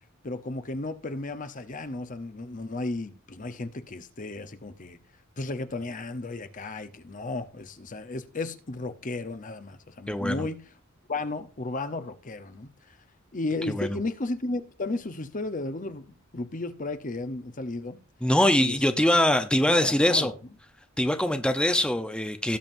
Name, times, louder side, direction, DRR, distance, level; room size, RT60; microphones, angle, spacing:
voice 1, 0.2-5.0 5.4-10.6 11.1-13.0 13.3-18.0 18.6-19.1 19.6-20.4, left 2 dB, 40° left, 0.8 m, -34 dB
voice 2, 10.1-10.5 13.7-14.0 18.2-20.3 21.0-22.6, left 1 dB, 5° left, 0.7 m, -23 dB
18.0 x 7.2 x 2.6 m
head